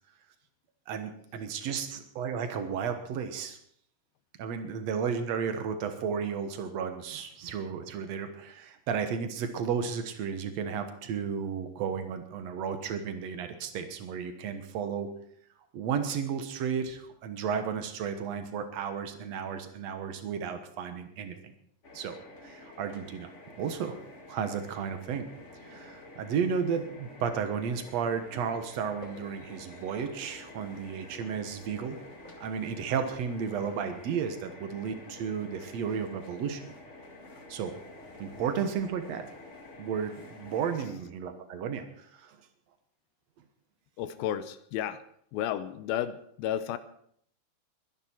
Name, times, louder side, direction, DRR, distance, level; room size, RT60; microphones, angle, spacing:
voice 1, 0.9-3.6 4.4-15.1 15.7-21.5 21.9-22.2 22.4-23.3 23.6-24.0 24.3-25.3 25.7-32.0 32.4-36.7 37.5-37.7 38.2-39.3 39.8-42.4, right 7 dB, 65° right, 8 dB, 1.7 m, -33 dB
sound 1, 21.8-40.9, left 2 dB, 45° left, 0.9 m, -49 dB
sound 2, 25.3-39.5, left 1 dB, 10° left, 4.1 m, -57 dB
voice 2, 44.0-45.0 45.3-46.8, left 11 dB, 80° left, 13 dB, 2.3 m, -32 dB
22.0 x 11.0 x 4.5 m, 0.67 s
omnidirectional pair, 4.7 m